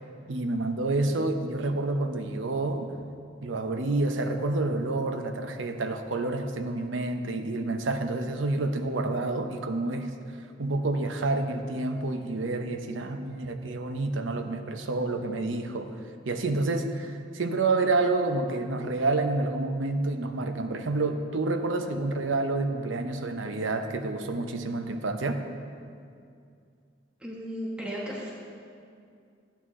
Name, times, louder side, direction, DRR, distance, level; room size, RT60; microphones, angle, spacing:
voice 1, 0.3-2.9 3.4-10.1 10.6-16.0 16.3-25.4, right 2 dB, 90° right, 7 dB, 0.7 m, -28 dB
voice 2, 27.2-28.3, equal, 5° right, -5 dB, 1.2 m, -35 dB
12.5 x 8.6 x 3.7 m, 2.4 s
head